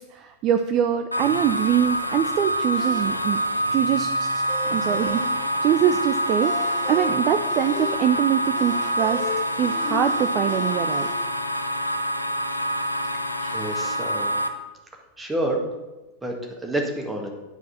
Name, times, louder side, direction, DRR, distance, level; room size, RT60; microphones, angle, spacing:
voice 1, 0.1-3.4 3.7-4.4 4.7-5.2 5.6-6.5 6.9-9.2 9.6-11.1, right 10 dB, 35° right, 8 dB, 0.5 m, -23 dB
sound 1, 1.1-14.5, equal, 90° left, 0.6 m, -26 dB
sound 2, 2.8-11.1, left 5 dB, 50° left, 2.0 m, -36 dB
voice 2, 13.4-14.4 15.2-15.6 16.2-17.3, right 1 dB, 10° right, 2 dB, 1.8 m, -28 dB
9.4 x 4.8 x 7.3 m, 1.1 s
figure-of-eight pair, 90°, 0 cm